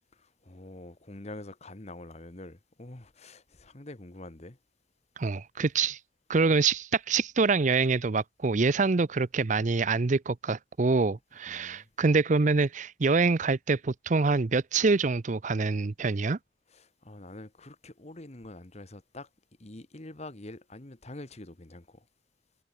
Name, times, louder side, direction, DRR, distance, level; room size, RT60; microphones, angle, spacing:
voice 1, 0.1-4.6 11.5-11.9 16.7-19.3 19.6-22.1, left 2 dB, 35° left, 1.5 m, -46 dB
voice 2, 5.2-6.0 6.3-16.4, right 4 dB, 40° right, 0.6 m, -25 dB
head